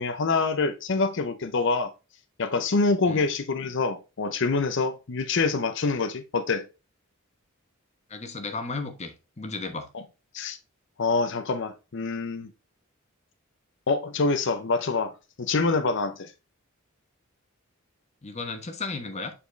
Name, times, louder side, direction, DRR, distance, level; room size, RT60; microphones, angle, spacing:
voice 1, 0.0-1.9 2.4-6.6 10.3-10.6 11.0-12.5 13.9-15.1 15.4-16.3, left 4 dB, 60° left, 0.7 m, -26 dB
voice 2, 8.1-9.9 18.2-19.3, left 3 dB, 30° left, 1.0 m, -34 dB
7.2 x 4.3 x 3.2 m
head